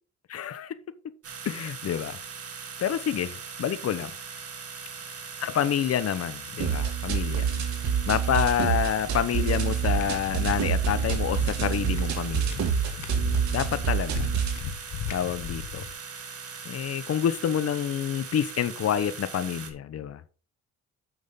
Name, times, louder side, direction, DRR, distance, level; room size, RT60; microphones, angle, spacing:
voice 1, 0.3-0.8 1.4-2.2 2.8-4.1 5.4-7.5 8.1-12.6 13.5-14.3 15.1-15.8 16.6-20.2, left 9 dB, 55° left, 0.9 m, -28 dB
sound 1, 1.2-19.7, right 5 dB, 50° right, 2.3 m, -40 dB
sound 2, 6.6-14.6, right 7 dB, 70° right, 2.6 m, -27 dB
sound 3, 9.8-15.9, left 7 dB, 85° left, 1.4 m, -36 dB
9.0 x 6.2 x 4.1 m
cardioid pair, 90°, 30 cm